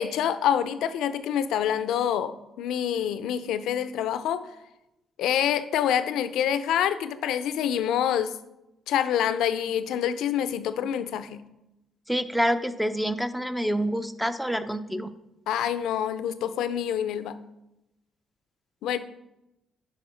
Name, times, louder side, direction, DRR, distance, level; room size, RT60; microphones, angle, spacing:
voice 1, 0.0-4.4 5.2-8.4 8.9-11.4 15.5-17.4 18.8-19.0, left 9 dB, 85° left, 12 dB, 0.5 m, -26 dB
voice 2, 12.1-15.1, equal, ahead, 10 dB, 0.6 m, -27 dB
10.5 x 3.6 x 5.1 m, 0.92 s
cardioid pair, 90°, 0 cm